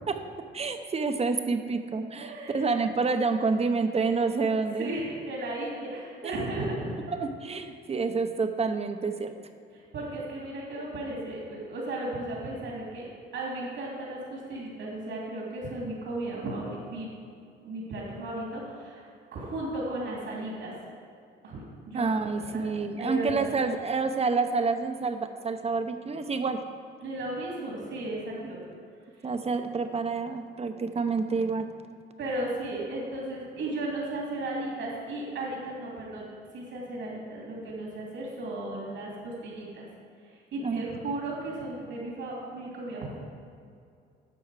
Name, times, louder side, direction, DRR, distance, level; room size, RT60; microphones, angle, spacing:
voice 1, 0.5-4.9 6.6-9.3 21.9-26.6 29.2-31.7 40.6-40.8, right 4 dB, 30° right, 8 dB, 0.8 m, -28 dB
voice 2, 2.2-2.7 4.8-7.2 9.7-13.1 13.3-17.1 17.6-20.7 21.4-23.6 27.0-28.6 32.2-36.3 36.5-39.8 40.5-43.2, right 2 dB, 80° right, -4 dB, 2.7 m, -35 dB
11.0 x 7.0 x 4.9 m, 2.4 s
cardioid pair, 90°, 20 cm